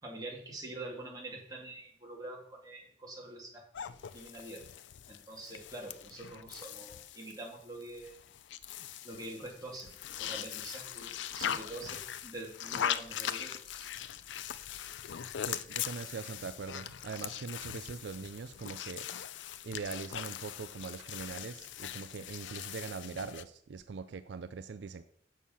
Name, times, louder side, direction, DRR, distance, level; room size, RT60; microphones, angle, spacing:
voice 1, 0.0-4.6 5.1-8.2 9.0-9.9 10.2-13.9, right 2 dB, 20° right, -2 dB, 2.2 m, -45 dB
sound 1, 3.7-23.4, left 9 dB, 85° left, 0.4 m, -41 dB
voice 2, 15.5-19.0 19.6-25.0, right 5 dB, 70° right, 11 dB, 0.4 m, -42 dB
7.4 x 6.5 x 5.5 m, 0.64 s
head